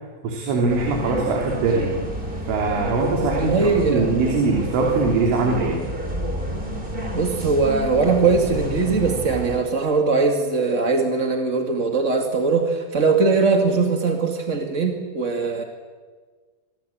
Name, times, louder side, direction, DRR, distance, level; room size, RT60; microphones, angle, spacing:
voice 1, 0.2-1.9 2.5-3.5 3.9-5.8, right 3 dB, 85° right, 0 dB, 5.6 m, -21 dB
sound 1, 0.7-9.6, equal, 10° right, 3.6 m, -30 dB
voice 2, 3.3-4.1 7.1-15.6, right 4 dB, 45° right, 3 dB, 0.9 m, -21 dB
26.5 x 25.0 x 8.7 m, 1.5 s
omnidirectional pair, 5.4 m